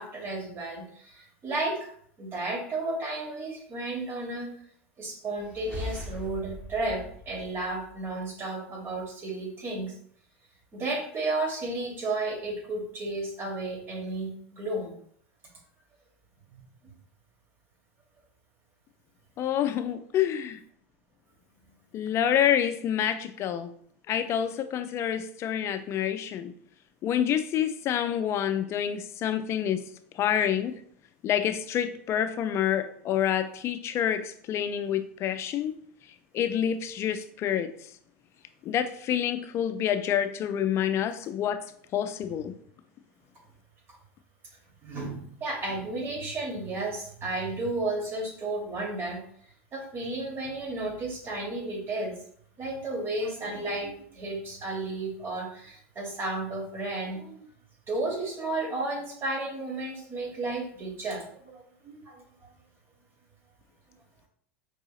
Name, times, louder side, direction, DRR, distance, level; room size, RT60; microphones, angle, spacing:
voice 1, 0.0-1.9 2.2-4.5 5.0-9.9 10.7-14.9 16.5-16.6 44.8-49.2 49.7-52.1 52.6-57.4 57.9-62.2, right 2 dB, 35° right, 1.3 m, -33 dB
sound 1, 5.4-8.2, equal, 15° right, 1.2 m, -40 dB
voice 2, 19.4-20.6 21.9-23.7 24.1-26.5 27.0-29.8 30.1-30.7 31.2-35.7 36.3-37.7 38.6-41.7 41.9-42.5, left 9 dB, 40° left, 0.4 m, -27 dB
4.7 x 2.8 x 2.4 m
hypercardioid pair, 90°, 7 cm